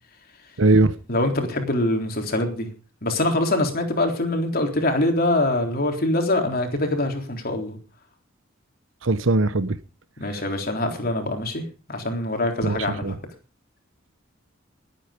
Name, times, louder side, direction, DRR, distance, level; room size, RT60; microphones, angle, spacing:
voice 1, 0.6-0.9 9.0-9.8 12.6-13.1, right 2 dB, 70° right, 1.0 m, -20 dB
voice 2, 1.1-2.7 3.0-7.8 10.2-11.6 11.9-13.2, left 1 dB, 50° left, 3.7 m, -24 dB
20.0 x 9.2 x 5.1 m
head